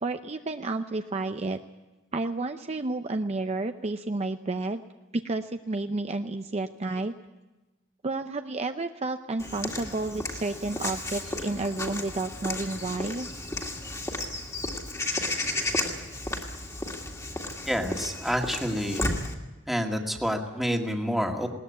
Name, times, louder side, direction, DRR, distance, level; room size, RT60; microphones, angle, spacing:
voice 1, 0.0-1.6 2.1-4.8 5.1-7.1 8.0-13.3, right 2 dB, 35° right, 7 dB, 0.6 m, -31 dB
Walk footsteps / Bird vocalization bird call bird song, 9.4-19.3, left 2 dB, 15° left, 2.1 m, -33 dB
voice 2, 17.7-19.0 19.7-21.5, equal, ahead, 2 dB, 1.9 m, -28 dB
20.0 x 18.5 x 8.4 m, 1.1 s
head